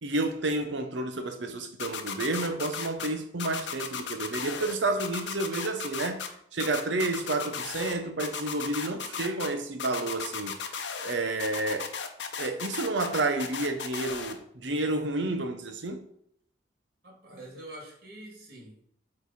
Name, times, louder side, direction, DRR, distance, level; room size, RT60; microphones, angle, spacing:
voice 1, 0.0-6.3 6.5-10.5 11.0-11.9 12.4-16.1, right 2 dB, 70° right, 0.8 m, -30 dB
sound 1, 1.8-3.1 3.4-4.7 5.0-6.3 6.6-7.9 8.2-9.5 9.8-11.1 11.4-14.3, left 6 dB, 70° left, 0.7 m, -35 dB
voice 2, 17.0-18.8, right 1 dB, 50° right, 2.2 m, -45 dB
8.1 x 3.3 x 4.2 m
head